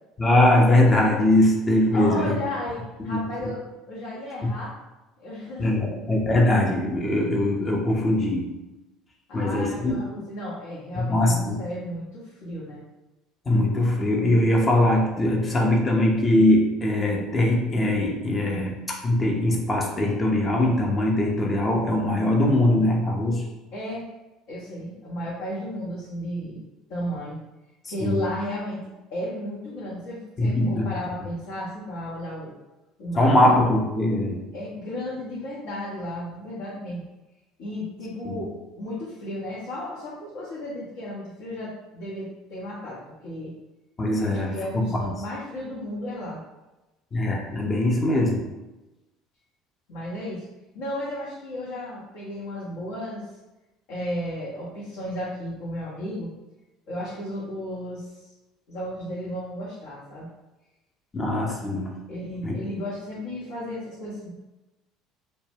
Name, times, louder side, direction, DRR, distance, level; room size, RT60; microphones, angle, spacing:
voice 1, 0.2-2.4 3.0-3.3 5.6-8.6 9.3-10.0 10.9-11.6 13.5-23.5 28.0-28.2 30.4-30.9 33.2-34.5 38.2-38.4 44.0-45.1 47.1-48.5 61.1-62.0 62.4-62.6, left 1 dB, 25° left, -1 dB, 0.6 m, -21 dB
voice 2, 1.9-2.8 3.0-3.6 3.9-4.7 5.2-5.8 9.3-12.8 23.7-24.0 24.5-26.6 26.9-27.4 27.9-28.8 29.1-32.6 33.0-33.5 34.5-37.0 37.6-38.5 38.8-43.5 44.3-46.4 49.9-50.4 50.7-53.3 53.9-56.3 56.9-58.3 58.7-60.3 62.1-64.3, left 1 dB, 60° left, -8 dB, 0.7 m, -34 dB
2.1 x 2.1 x 3.3 m, 1.0 s
figure-of-eight pair, 65°, 0 cm